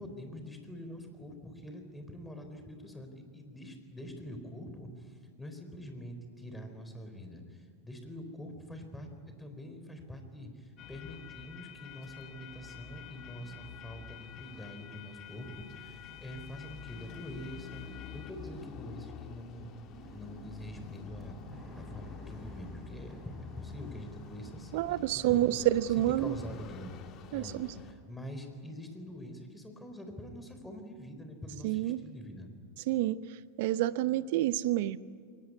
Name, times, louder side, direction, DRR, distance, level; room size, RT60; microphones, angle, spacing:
voice 1, 0.0-19.7 20.0-21.4 21.7-23.2 23.6-25.6 26.0-26.9 27.3-32.5, equal, 10° left, 6 dB, 4.3 m, -45 dB
sound 1, 10.8-27.9, left 7 dB, 40° left, 1.9 m, -48 dB
sound 2, 18.8-28.2 28.5-29.3, right 2 dB, 15° right, 7.9 m, -54 dB
voice 2, 24.7-26.3 27.3-27.7 31.6-32.0 32.9-33.2 33.6-35.0, right 14 dB, 55° right, 17 dB, 0.8 m, -28 dB
22.5 x 19.0 x 9.9 m, 2.1 s
figure-of-eight pair, 90°, 0 cm